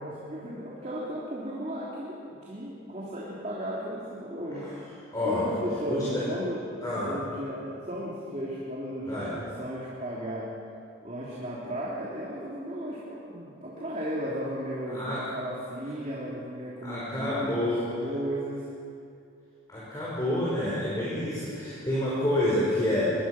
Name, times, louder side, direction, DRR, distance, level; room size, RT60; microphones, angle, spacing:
voice 1, 0.0-5.0 5.2-6.6 7.0-10.5 11.0-18.7, equal, 35° right, -6 dB, 3.3 m, -35 dB
voice 2, 5.9-6.2 6.8-7.1 9.1-9.3 14.9-15.2 16.8-17.9 19.7-23.1, left 1 dB, 20° left, -8 dB, 5.3 m, -28 dB
24.5 x 20.5 x 6.1 m, 2.5 s
head